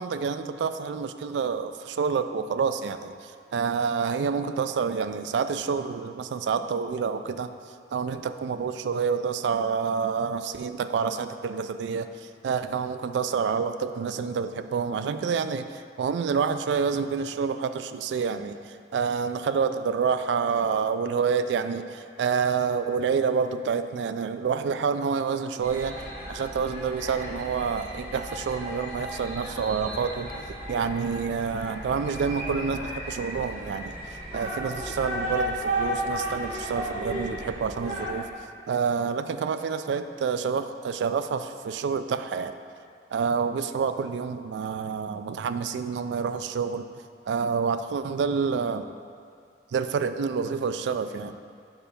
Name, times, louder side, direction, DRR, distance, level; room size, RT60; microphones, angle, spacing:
voice 1, 0.0-42.6 43.1-46.8 47.3-48.8 49.7-51.4, right 6 dB, 80° right, 10 dB, 0.3 m, -28 dB
sound 1, 25.6-38.1, equal, 35° right, 1.7 m, -34 dB
5.6 x 4.8 x 5.1 m, 2.2 s
head